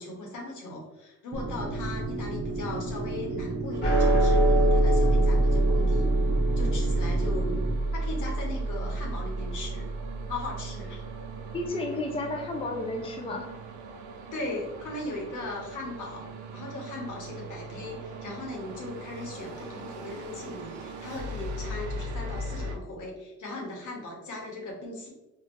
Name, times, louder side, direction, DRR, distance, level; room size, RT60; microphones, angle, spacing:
voice 1, 0.0-6.1 6.6-7.5 7.9-9.9 10.3-11.0 14.3-25.1, left 2 dB, 80° left, -1 dB, 1.1 m, -38 dB
sound 1, 1.3-7.7, right 2 dB, 40° right, 0.7 m, -33 dB
sound 2, 3.7-22.8, right 2 dB, 80° right, 0.5 m, -40 dB
sound 3, 3.8-10.4, right 1 dB, 35° left, 1.2 m, -24 dB
voice 2, 11.5-13.5, left 2 dB, 20° left, 2 dB, 0.4 m, -32 dB
3.6 x 2.4 x 2.5 m, 1.0 s
cardioid pair, 90°, 30 cm